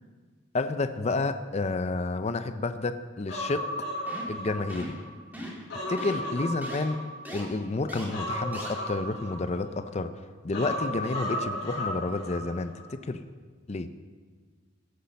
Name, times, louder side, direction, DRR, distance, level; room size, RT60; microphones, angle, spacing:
voice 1, 0.5-3.7 4.3-5.0 5.9-7.0 7.3-10.1 10.4-13.2 13.7-13.9, left 3 dB, 35° left, 10 dB, 0.5 m, -30 dB
Human voice, 3.3-5.1 5.5-7.5 8.1-9.9 10.5-12.5 12.7-12.9, equal, 80° left, 4.4 m, -34 dB
sound 1, 4.1-4.4 4.7-5.0 5.3-5.6 6.0-6.1 6.6-6.8 7.2-7.4 7.9-8.0 8.5-8.7, equal, 10° right, 2.2 m, -39 dB
15.0 x 8.4 x 5.3 m, 1.5 s
head